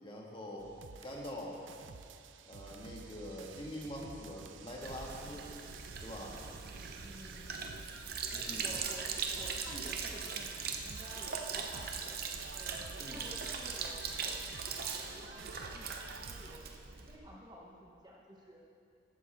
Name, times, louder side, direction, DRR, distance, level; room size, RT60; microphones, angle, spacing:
voice 1, 0.0-0.7 1.0-1.6 2.4-5.5 6.0-6.4 8.3-8.8 13.0-13.2, left 1 dB, 25° left, -3 dB, 1.8 m, -44 dB
sound 1, 0.6-16.6, right 5 dB, 75° right, 0.5 m, -51 dB
Sink (filling or washing), 4.8-17.2, right 5 dB, 50° right, 0.8 m, -40 dB
voice 2, 6.9-7.5 8.5-12.1 12.5-16.7 17.1-18.6, equal, 20° right, -2 dB, 1.0 m, -53 dB
14.0 x 12.0 x 3.6 m, 2.4 s
head